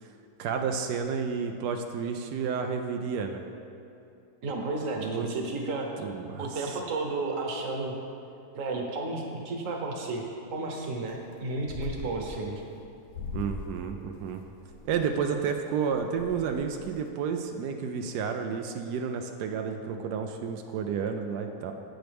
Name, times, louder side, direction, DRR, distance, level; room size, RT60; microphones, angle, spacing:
voice 1, 0.4-3.4 5.0-5.3 6.0-6.8 13.3-14.4 14.8-21.7, right 6 dB, 90° right, 5 dB, 1.2 m, -31 dB
voice 2, 4.4-5.9 6.4-7.9 8.5-10.2 10.5-12.6, right 2 dB, 55° right, 1 dB, 1.3 m, -32 dB
sound 1, 11.1-11.3 11.6-12.7 13.1-13.7 14.1-15.1 15.6-15.7 15.9-17.1, left 4 dB, 80° left, 1.2 m, -40 dB
10.0 x 8.1 x 3.4 m, 2.7 s
omnidirectional pair, 1.7 m